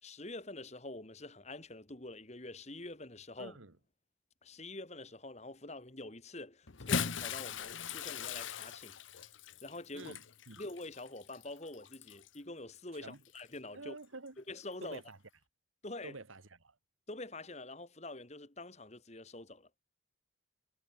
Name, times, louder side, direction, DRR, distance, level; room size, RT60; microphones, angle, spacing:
voice 1, 0.0-3.6 4.4-9.0 9.6-10.1 10.6-14.0 14.4-15.0 15.8-16.2 17.1-19.7, left 2 dB, 35° left, 1.9 m, -46 dB
voice 2, 3.4-3.8 9.9-10.6 12.9-13.2 13.7-14.4 14.8-15.2 16.0-16.8, right 3 dB, 90° right, 2.0 m, -49 dB
Bathtub (filling or washing) / Splash splatter, 6.7-12.4 13.3-13.4 14.9-15.0, left 6 dB, 75° left, 1.1 m, -40 dB
head